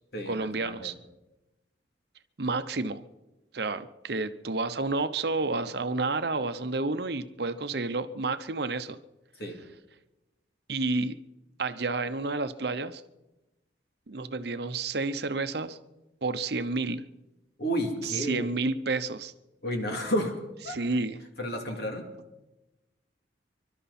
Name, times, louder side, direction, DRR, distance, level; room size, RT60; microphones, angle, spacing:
voice 1, 0.3-0.9 2.4-3.0 3.5-9.0 10.7-11.2 11.6-13.0 14.1-15.8 16.2-17.0 18.3-19.3 20.7-21.2, right 3 dB, 55° right, 10 dB, 0.8 m, -30 dB
voice 2, 17.6-18.5 19.6-20.3 20.6-20.8 21.4-22.0, equal, 55° left, 2 dB, 2.8 m, -31 dB
27.0 x 12.5 x 4.3 m, 1.0 s
head